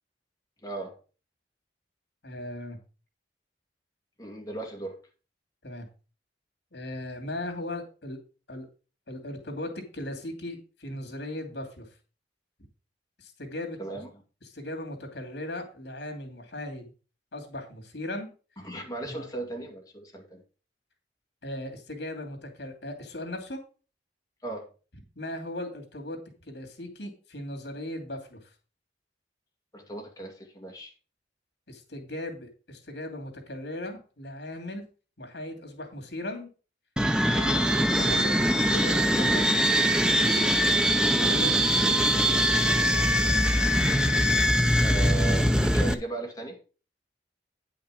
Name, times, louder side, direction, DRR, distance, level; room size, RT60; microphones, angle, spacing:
voice 1, 0.6-1.0 4.2-5.0 13.8-14.1 18.6-20.4 24.4-24.7 29.7-30.9 44.8-46.6, right 2 dB, 20° left, 1 dB, 2.1 m, -37 dB
voice 2, 2.2-2.8 5.6-5.9 6.7-8.2 8.5-8.7 9.1-11.9 13.2-13.8 14.4-16.9 17.3-18.3 19.0-19.3 21.4-23.6 25.2-26.2 26.5-28.5 31.7-34.9 35.2-36.5 37.3-39.4 40.0-40.5 41.2-42.3, left 1 dB, 80° left, 4 dB, 2.7 m, -37 dB
sound 1, 37.0-45.9, equal, 5° right, 0.6 m, -22 dB
9.8 x 5.8 x 4.9 m, 0.36 s
head